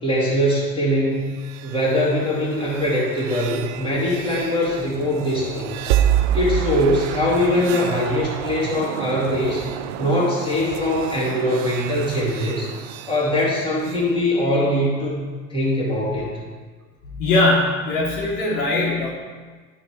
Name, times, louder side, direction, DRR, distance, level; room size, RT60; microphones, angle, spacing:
voice 1, 0.0-1.3 1.6-5.9 6.3-9.6 10.0-12.7 13.1-15.2 15.5-16.4, left 1 dB, 10° left, -7 dB, 2.5 m, -22 dB
sound 1, 1.2-14.1, right 10 dB, 60° right, 0.6 m, -28 dB
voice 2, 17.1-19.1, left 2 dB, 70° left, -4 dB, 3.0 m, -20 dB
11.5 x 4.8 x 4.6 m, 1.5 s
hypercardioid pair, 80°, 42 cm